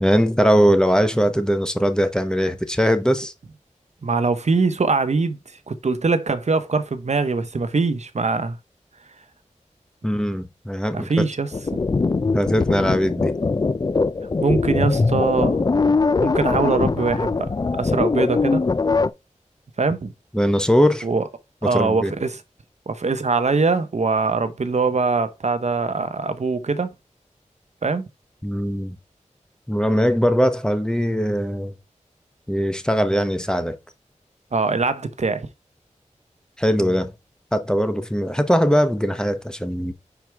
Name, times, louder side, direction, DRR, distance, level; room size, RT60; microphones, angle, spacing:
voice 1, 0.0-3.3 10.0-11.2 12.3-13.3 15.1-15.2 20.3-21.1 21.6-22.1 28.4-29.0 29.7-31.8 32.5-33.8 36.6-37.1 37.5-39.9, equal, 5° left, 0.9 m, -20 dB
voice 2, 4.0-5.4 5.7-8.6 10.9-11.8 14.4-15.7 16.2-18.6 19.8-20.1 21.0-21.2 21.6-22.4 22.9-26.9 27.8-28.1 34.5-35.5, right 4 dB, 60° right, 0.8 m, -22 dB
sound 1, 11.5-19.1, left 4 dB, 30° left, 0.3 m, -21 dB
5.9 x 4.6 x 3.4 m
wide cardioid pair, 80°, 13 cm